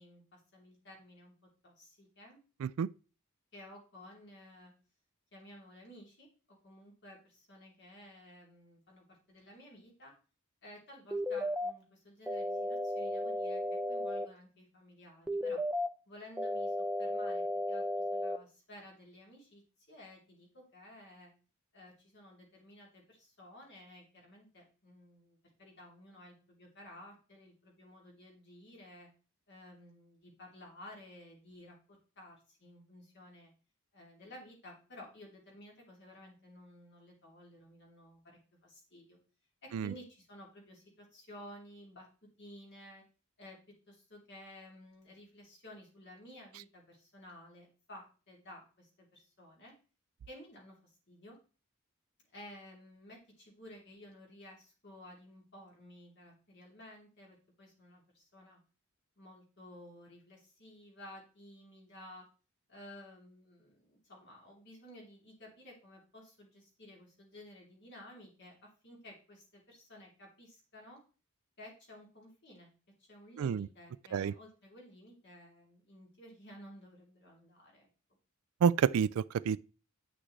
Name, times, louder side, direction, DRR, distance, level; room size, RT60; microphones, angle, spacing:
voice 1, 0.0-1.3 1.6-2.4 3.5-4.7 5.3-10.1 10.6-13.6 13.9-15.6 16.1-19.6 19.9-21.3 21.7-29.1 29.5-33.5 33.9-39.2 39.6-42.1 42.4-43.0 43.4-49.7 50.3-51.4 52.3-58.6 59.2-62.3 62.7-71.0 71.6-72.7 73.0-77.9, left 1 dB, 55° left, 3.1 m, -54 dB
sound 1, 11.1-11.7 12.3-14.3 15.3-15.9 16.4-18.4, left 1 dB, 5° right, 0.6 m, -34 dB
voice 2, 78.6-79.6, right 7 dB, 70° right, 0.3 m, -29 dB
9.1 x 6.1 x 3.2 m
head